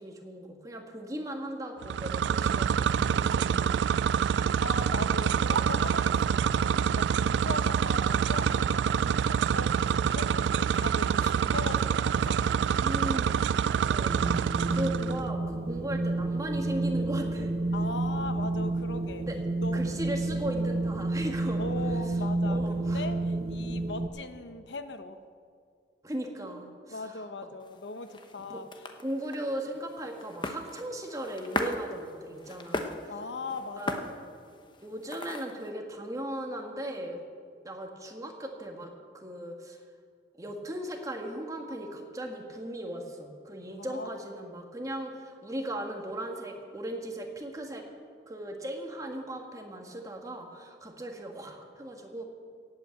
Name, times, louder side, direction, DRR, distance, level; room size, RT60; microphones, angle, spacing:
voice 1, 0.0-4.2 12.8-14.2 14.7-17.6 19.3-19.4 19.7-21.6 22.4-23.0 26.0-27.0 28.4-28.6 29.0-33.0 33.8-34.0 34.8-37.2 37.6-39.8 40.4-47.8 48.3-52.2, right 1 dB, 20° right, 2 dB, 1.6 m, -37 dB
sound 1, 1.8-15.2, right 7 dB, 85° right, 0.3 m, -26 dB
voice 2, 4.6-12.5 17.7-19.2 19.6-20.2 21.6-25.2 26.9-28.7 33.1-34.2 43.8-44.1, left 3 dB, 90° left, 9 dB, 0.9 m, -39 dB
Wind, 14.1-24.1, right 2 dB, 35° right, 0.7 m, -30 dB
sound 2, 27.6-35.7, left 2 dB, 25° left, 0.9 m, -39 dB
17.5 x 8.5 x 7.8 m, 2.2 s
head